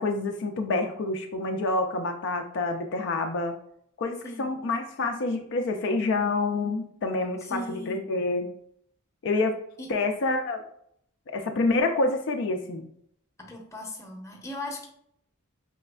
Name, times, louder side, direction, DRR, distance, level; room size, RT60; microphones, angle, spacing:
voice 1, 0.0-3.5 4.0-8.5 9.2-9.6 9.9-10.6 11.3-12.9, left 3 dB, 60° left, 5 dB, 0.4 m, -27 dB
voice 2, 7.4-8.1 9.8-9.9 13.4-14.9, left 1 dB, 15° left, 0 dB, 0.7 m, -38 dB
4.9 x 3.2 x 2.2 m, 0.70 s
head